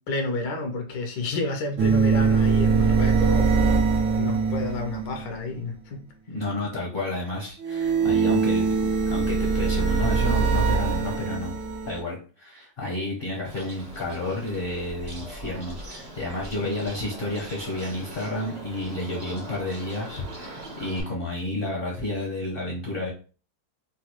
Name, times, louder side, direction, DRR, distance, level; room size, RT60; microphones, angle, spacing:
voice 1, 0.0-3.8 4.2-6.0 16.6-16.7, left 2 dB, 80° left, 4 dB, 1.4 m, -30 dB
sound 1, 1.8-5.3 7.6-12.0, right 5 dB, 70° right, 1.1 m, -22 dB
voice 2, 6.3-11.5 11.9-23.1, left 1 dB, 50° left, -3 dB, 0.7 m, -31 dB
Bird, 13.4-21.0, right 1 dB, 40° right, 0.6 m, -40 dB
3.9 x 2.3 x 2.9 m, 0.38 s
omnidirectional pair, 1.9 m